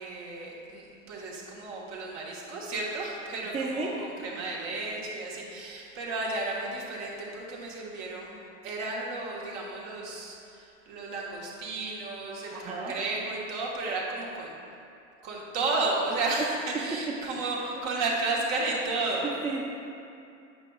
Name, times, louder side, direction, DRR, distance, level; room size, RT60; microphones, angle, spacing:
voice 1, 0.0-14.6 15.2-19.3, right 3 dB, 60° right, -3 dB, 1.4 m, -33 dB
voice 2, 3.5-4.1 12.5-12.9 19.2-19.7, right 3 dB, 20° right, -4 dB, 0.7 m, -33 dB
7.8 x 5.4 x 2.3 m, 2.6 s
hypercardioid pair, 100°, 38 cm